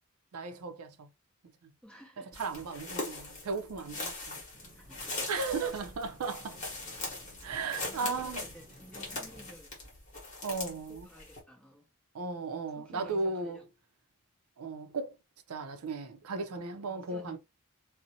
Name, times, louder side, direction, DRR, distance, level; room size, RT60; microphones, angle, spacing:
voice 1, 0.3-1.1 2.2-4.4 5.3-6.6 7.4-8.4 10.4-11.1 12.1-13.6 14.6-15.1 15.5-17.4, right 4 dB, 80° right, 0.4 m, -36 dB
voice 2, 1.8-2.4 4.7-5.3 7.8-9.8 10.9-11.9 12.7-13.6 16.5-17.4, equal, 5° left, 0.6 m, -53 dB
sound 1, 2.3-11.4, left 2 dB, 35° left, 1.0 m, -41 dB
sound 2, 4.5-9.5, right 1 dB, 35° right, 1.0 m, -57 dB
2.5 x 2.0 x 2.7 m
head